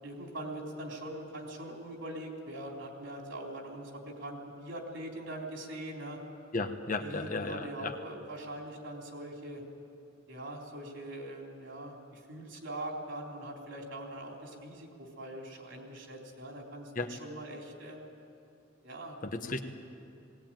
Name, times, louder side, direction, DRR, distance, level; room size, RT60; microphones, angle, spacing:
voice 1, 0.0-6.2 7.0-9.6 10.3-18.1 18.8-19.2, right 1 dB, 75° right, 0 dB, 3.9 m, -42 dB
voice 2, 6.5-7.9 16.9-17.1 19.2-19.6, left 3 dB, 45° left, 6 dB, 1.2 m, -34 dB
19.5 x 19.0 x 9.1 m, 2.6 s
head